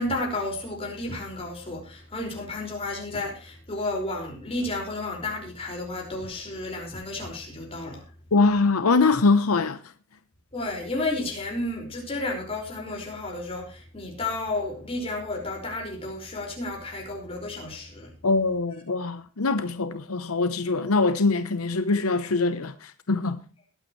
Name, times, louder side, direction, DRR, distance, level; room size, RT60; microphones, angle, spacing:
voice 1, 0.0-8.1 10.5-18.1, left 2 dB, 25° left, 5.2 m, -32 dB
voice 2, 8.3-9.8 18.2-23.4, left 3 dB, 85° left, 0.9 m, -23 dB
21.0 x 9.0 x 3.1 m
head